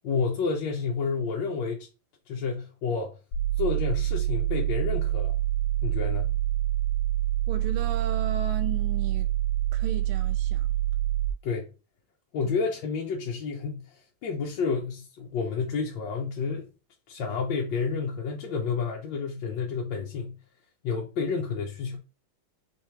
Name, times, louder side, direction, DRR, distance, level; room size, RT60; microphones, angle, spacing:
voice 1, 0.0-1.9 2.3-3.1 3.6-5.3 5.8-6.3 11.4-11.7 12.3-16.7 17.1-20.4 20.8-22.0, left 5 dB, 70° left, 1.3 m, -30 dB
sound 1, 3.3-11.3, right 14 dB, 90° left, 1.4 m, -26 dB
voice 2, 7.5-9.3 9.7-10.7 12.4-12.5, right 7 dB, 90° right, 1.5 m, -35 dB
4.7 x 3.0 x 3.3 m
omnidirectional pair, 2.3 m